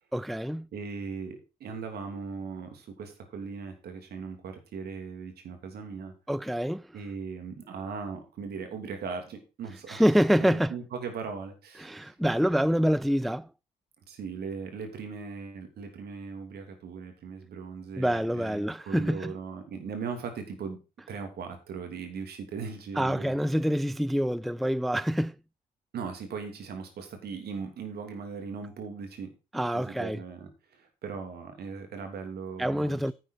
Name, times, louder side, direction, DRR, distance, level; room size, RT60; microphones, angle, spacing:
voice 1, 0.1-0.7 6.3-6.9 9.9-10.7 11.8-13.5 18.0-19.3 23.0-25.4 29.5-30.2 32.6-33.1, equal, ahead, 0.4 m, -26 dB
voice 2, 0.7-6.1 6.9-10.1 10.4-12.1 14.1-20.8 21.1-23.3 25.9-29.3 29.7-33.1, right 5 dB, 65° right, 3.0 m, -39 dB
10.0 x 7.7 x 4.8 m
hypercardioid pair, 50°, 17 cm